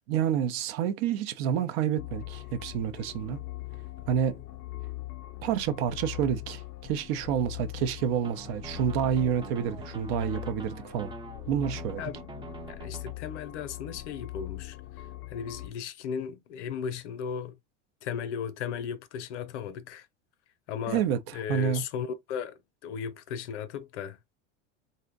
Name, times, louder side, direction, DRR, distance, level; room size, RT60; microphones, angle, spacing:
voice 1, 0.1-3.4 4.1-4.4 5.4-11.1 11.5-12.0 20.9-21.8, right 8 dB, 55° right, 0.6 m, -29 dB
sound 1, 2.0-15.7, left 17 dB, 35° left, 0.4 m, -41 dB
sound 2, 8.1-13.1, right 5 dB, 15° right, 0.5 m, -45 dB
voice 2, 12.7-14.8 15.3-17.6 18.0-20.1 20.7-21.0 21.3-24.4, left 7 dB, 75° left, 0.6 m, -36 dB
2.6 x 2.1 x 3.7 m
hypercardioid pair, 90°, 36 cm